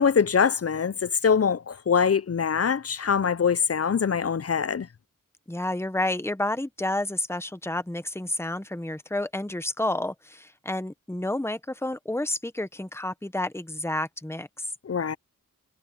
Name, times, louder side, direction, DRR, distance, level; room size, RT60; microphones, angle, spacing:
voice 1, 0.0-4.9 14.8-15.2, left 6 dB, 45° left, 0.5 m, -23 dB
voice 2, 5.5-14.7, left 1 dB, 5° left, 1.1 m, -30 dB
wide cardioid pair, 45°, 34 cm